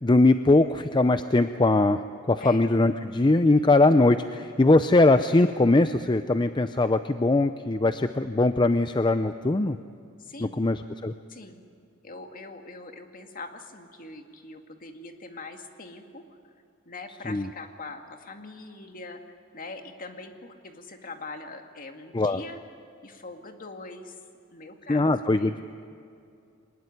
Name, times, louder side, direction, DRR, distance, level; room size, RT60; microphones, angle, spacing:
voice 1, 0.0-2.0 2.3-9.8 10.4-11.1 17.3-17.4 22.1-22.4 24.9-25.6, left 2 dB, 25° left, 10 dB, 0.5 m, -21 dB
voice 2, 3.5-3.8 5.2-5.3 10.2-10.6 11.3-11.7 12.0-16.2 16.9-19.2 19.5-22.6 23.0-24.2 24.5-25.6, left 3 dB, 45° left, 5 dB, 2.1 m, -42 dB
23.5 x 20.5 x 9.9 m, 2.4 s
head